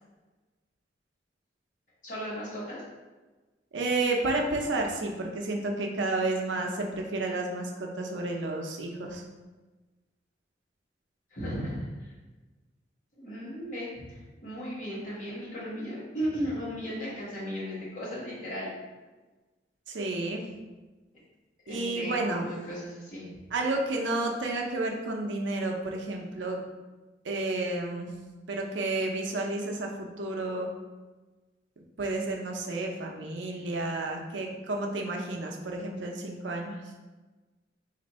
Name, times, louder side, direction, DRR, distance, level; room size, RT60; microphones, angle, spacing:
voice 1, 2.0-2.8 11.3-12.1 13.1-18.7 21.6-23.3, equal, 45° left, -8 dB, 1.4 m, -36 dB
voice 2, 3.7-9.2 19.9-20.4 21.7-22.5 23.5-26.6 27.2-28.1 28.5-30.7 32.0-36.8, right 2 dB, 85° right, 1 dB, 0.6 m, -31 dB
3.3 x 2.5 x 4.1 m, 1.2 s
head